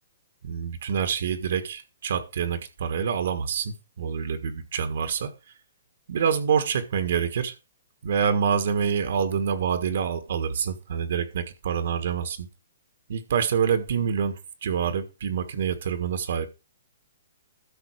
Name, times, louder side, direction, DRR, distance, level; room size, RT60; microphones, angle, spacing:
voice 1, 0.4-5.3 6.1-7.5 8.0-12.5 13.1-16.5, right 7 dB, 70° right, 1.6 m, -26 dB
13.0 x 5.9 x 4.7 m
hypercardioid pair, 145°, 0 cm